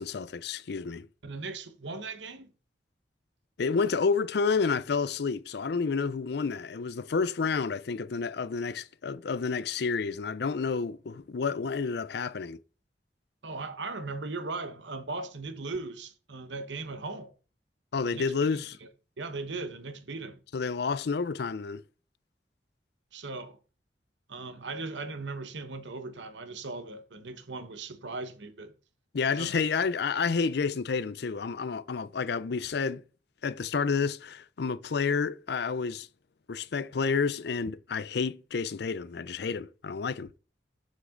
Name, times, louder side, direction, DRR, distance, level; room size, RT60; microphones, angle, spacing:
voice 1, 0.0-1.1 3.6-12.6 17.9-18.8 20.5-21.8 29.1-33.0 33.4-36.1 36.5-40.3, left 5 dB, 65° left, 0.5 m, -30 dB
voice 2, 1.2-2.5 13.4-17.3 18.0-18.9 19.2-20.4 23.1-23.6 24.3-28.7 29.3-29.6, right 3 dB, 90° right, 1.1 m, -38 dB
7.4 x 6.6 x 3.8 m
head